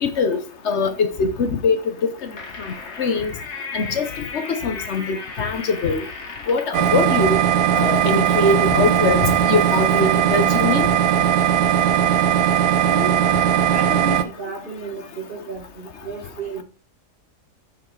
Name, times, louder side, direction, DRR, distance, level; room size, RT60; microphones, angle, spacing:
voice 1, 0.0-1.8 3.0-3.3 3.7-4.1 4.3-6.0 6.5-7.4 7.7-9.2 9.5-10.9, left 4 dB, 50° left, 1.0 m, -22 dB
sound 1, 2.0-6.8, left 4 dB, 80° left, 2.2 m, -35 dB
sound 2, 6.7-14.2, right 9 dB, 85° right, 1.3 m, -18 dB
voice 2, 12.8-16.6, right 2 dB, 35° right, 1.8 m, -33 dB
8.4 x 5.0 x 4.7 m
omnidirectional pair, 1.7 m